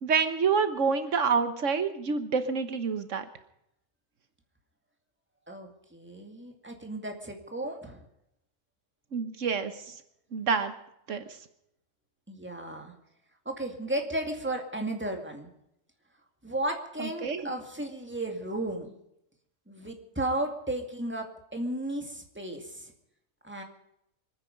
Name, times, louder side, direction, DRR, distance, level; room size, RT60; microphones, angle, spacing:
voice 1, 0.0-3.2 9.1-10.0 10.3-10.7 11.1-11.2 17.0-17.4, right 5 dB, 80° right, 10 dB, 1.5 m, -27 dB
voice 2, 5.5-8.1 12.3-12.9 13.5-15.5 16.4-18.9 19.7-22.9 23.4-23.6, right 1 dB, 10° right, 3 dB, 2.3 m, -34 dB
26.0 x 9.7 x 5.2 m, 0.80 s
omnidirectional pair, 1.3 m